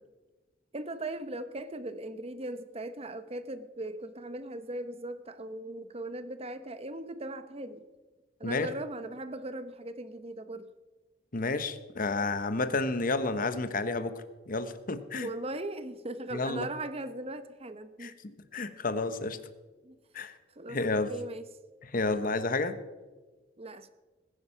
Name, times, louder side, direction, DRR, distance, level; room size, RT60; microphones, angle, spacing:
voice 1, 0.7-7.9 8.4-10.7 15.2-18.2 19.8-20.0 20.6-21.4 22.1-22.4 23.6-23.9, right 1 dB, 35° right, 11 dB, 1.0 m, -39 dB
voice 2, 11.3-15.3 16.3-16.7 18.0-19.4 20.1-20.3 20.7-21.1 21.9-22.8, left 3 dB, 50° left, 11 dB, 1.0 m, -31 dB
20.5 x 9.9 x 5.7 m, 1.3 s
head